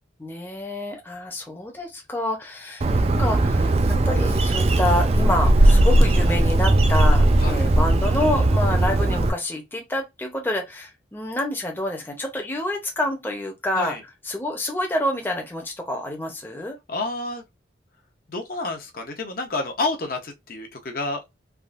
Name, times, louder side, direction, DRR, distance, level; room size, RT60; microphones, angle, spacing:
voice 1, 0.2-2.8 3.2-3.7 4.1-13.9 14.3-16.8, left 1 dB, 10° left, 0.6 m, -28 dB
Bird, 2.8-9.3, right 1 dB, 35° right, 0.3 m, -18 dB
voice 2, 16.9-17.4 18.3-21.2, left 2 dB, 50° left, 0.6 m, -29 dB
3.4 x 2.4 x 2.4 m
head